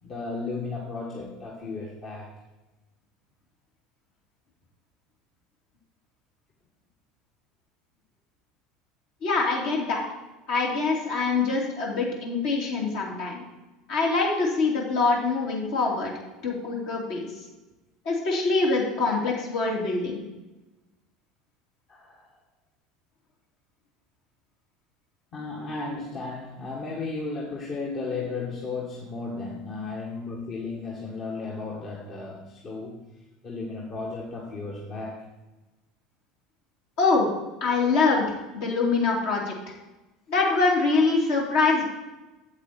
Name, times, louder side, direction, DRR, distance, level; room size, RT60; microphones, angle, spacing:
voice 1, 0.0-2.3 21.9-22.3 25.3-33.0 33.4-35.2, left 3 dB, 40° left, -3 dB, 1.7 m, -34 dB
voice 2, 9.2-10.0 10.5-13.4 13.9-16.1 16.4-17.3 18.0-20.2 37.0-37.3 37.6-38.2 38.5-39.5 40.3-41.9, left 3 dB, 60° left, -3 dB, 2.6 m, -24 dB
8.2 x 8.0 x 4.3 m, 1.1 s
figure-of-eight pair, 70°, 0 cm